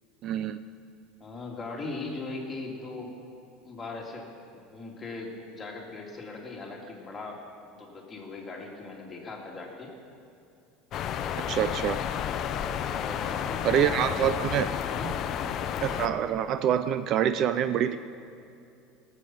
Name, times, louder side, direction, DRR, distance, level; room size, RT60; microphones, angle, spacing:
voice 1, 0.2-0.6 11.5-12.0 13.6-14.7 15.8-18.0, right 9 dB, 45° right, 11 dB, 0.4 m, -26 dB
voice 2, 1.2-3.1 3.6-4.3 4.7-7.4 7.8-9.9 12.9-14.3 14.9-15.1, left 3 dB, 20° left, -1 dB, 2.4 m, -39 dB
sound 1, 10.9-16.1, left 9 dB, 40° left, 0.6 m, -31 dB
18.5 x 7.6 x 6.0 m, 2.6 s
supercardioid pair, 140°, 0 cm